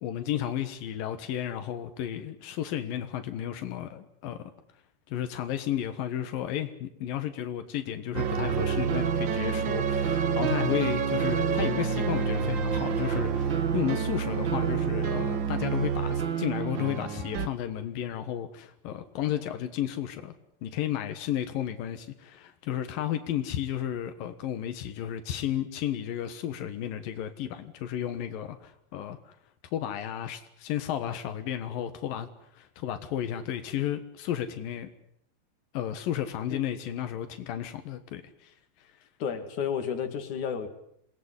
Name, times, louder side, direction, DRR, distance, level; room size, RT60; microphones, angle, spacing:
voice 1, 0.0-4.5 5.1-20.3 20.6-29.3 29.7-32.3 32.5-34.9 35.7-38.9, left 11 dB, 85° left, 8 dB, 3.1 m, -33 dB
sound 1, 8.1-17.5, right 6 dB, 60° right, 1.3 m, -28 dB
voice 2, 39.2-40.7, left 7 dB, 65° left, 6 dB, 3.8 m, -31 dB
28.0 x 19.5 x 9.8 m, 0.73 s
omnidirectional pair, 3.9 m